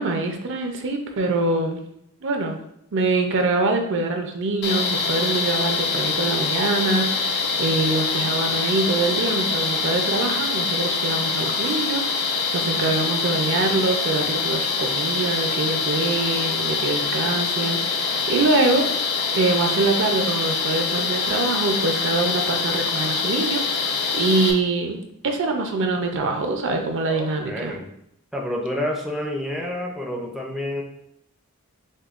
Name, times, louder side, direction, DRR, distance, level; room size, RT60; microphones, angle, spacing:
voice 1, 0.0-1.8 2.2-2.6 2.9-18.9 19.3-25.0 25.2-27.7, right 3 dB, 60° right, 4 dB, 0.5 m, -24 dB
sound 1, 4.6-24.5, left 5 dB, 50° left, 0.6 m, -24 dB
voice 2, 27.1-27.9 28.3-30.8, left 1 dB, ahead, -1 dB, 0.5 m, -29 dB
6.3 x 2.2 x 2.4 m, 0.76 s
head